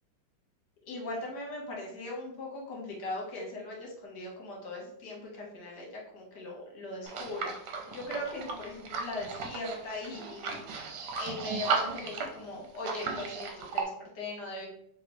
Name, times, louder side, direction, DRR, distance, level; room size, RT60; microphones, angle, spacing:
voice 1, 0.8-10.5 11.2-14.7, left 2 dB, 55° left, -1 dB, 1.5 m, -39 dB
sound 1, 7.1-13.8, right 5 dB, 85° right, 1.6 m, -35 dB
3.4 x 3.0 x 4.2 m, 0.71 s
omnidirectional pair, 2.4 m